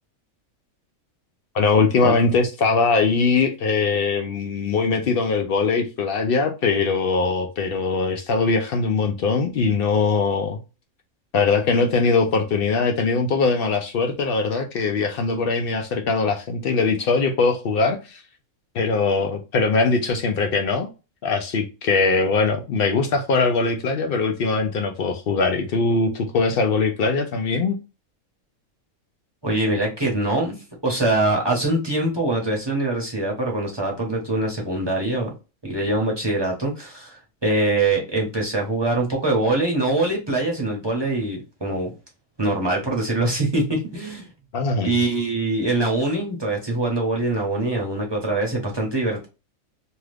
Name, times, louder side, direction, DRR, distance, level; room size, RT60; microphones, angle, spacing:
voice 1, 1.5-10.6 11.3-18.2 18.7-20.9 21.2-27.8 44.5-44.9, left 4 dB, 75° left, 0.5 m, -21 dB
voice 2, 29.4-30.6 30.8-35.3 35.6-41.9 42.4-44.3 44.8-49.3, right 2 dB, 25° right, 0.7 m, -23 dB
2.8 x 2.4 x 3.2 m
omnidirectional pair, 1.5 m